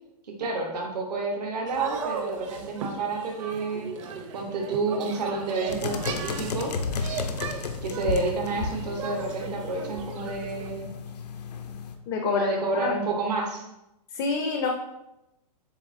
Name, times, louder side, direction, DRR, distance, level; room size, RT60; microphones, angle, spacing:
voice 1, 0.4-3.9 4.3-6.7 7.8-10.9 12.2-13.7, right 3 dB, 85° right, 0 dB, 1.1 m, -29 dB
sound 1, 1.7-10.7, right 6 dB, 50° right, 0.6 m, -38 dB
sound 2, 5.7-12.0, left 5 dB, 85° left, 0.6 m, -33 dB
voice 2, 12.1-13.0 14.1-14.7, left 5 dB, 30° left, 3 dB, 0.4 m, -27 dB
7.5 x 2.8 x 2.6 m, 0.92 s
hypercardioid pair, 150°, 20 cm